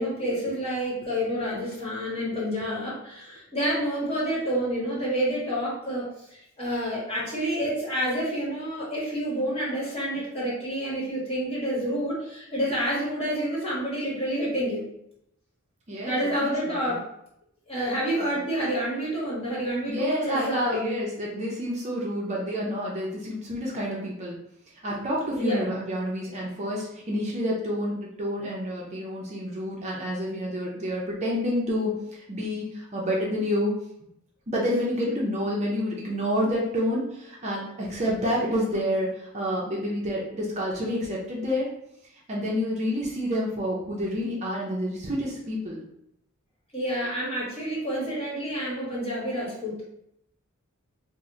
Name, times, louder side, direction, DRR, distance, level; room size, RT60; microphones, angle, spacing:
voice 1, 0.0-14.8 16.0-17.1 17.7-20.9 25.3-25.7 46.7-49.9, equal, 30° left, -6 dB, 1.2 m, -28 dB
voice 2, 15.9-17.0 18.2-18.4 19.9-24.4 24.8-33.7 34.5-41.7 42.3-45.8, equal, 35° right, -3 dB, 0.6 m, -29 dB
2.8 x 2.1 x 3.6 m, 0.77 s
head